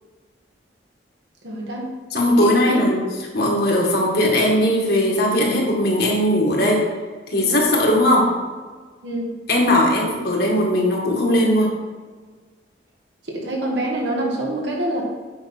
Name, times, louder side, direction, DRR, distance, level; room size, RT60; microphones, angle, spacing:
voice 1, 1.4-1.9 2.4-2.8 9.0-9.3 13.2-15.0, right 1 dB, 70° right, -2 dB, 1.9 m, -25 dB
voice 2, 2.1-3.0 3.3-6.8 7.3-8.3 9.5-11.7, left 1 dB, 55° left, -2 dB, 2.0 m, -18 dB
8.9 x 5.6 x 4.4 m, 1.5 s
head